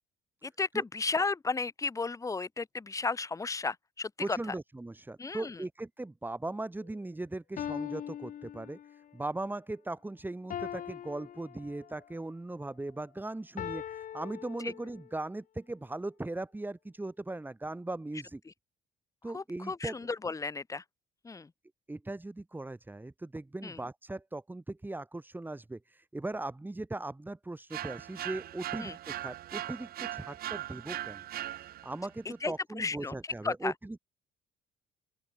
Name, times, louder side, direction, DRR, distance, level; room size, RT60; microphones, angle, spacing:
voice 1, 0.4-4.4 5.2-5.6 14.6-14.7 19.3-20.8 21.2-21.5 23.6-23.8 28.8-29.0 32.3-33.7, left 4 dB, 20° left, 1.8 m, -34 dB
voice 2, 4.2-18.4 19.2-19.9 21.9-31.2 31.5-34.0, right 2 dB, 10° right, 4.2 m, -39 dB
sound 1, 6.8-6.9 7.6-9.2 10.5-12.1 13.6-15.2, left 10 dB, 50° left, 2.1 m, -41 dB
sound 2, 27.7-32.1, right 13 dB, 60° right, 1.5 m, -39 dB
open air
cardioid pair, 110°, 17 cm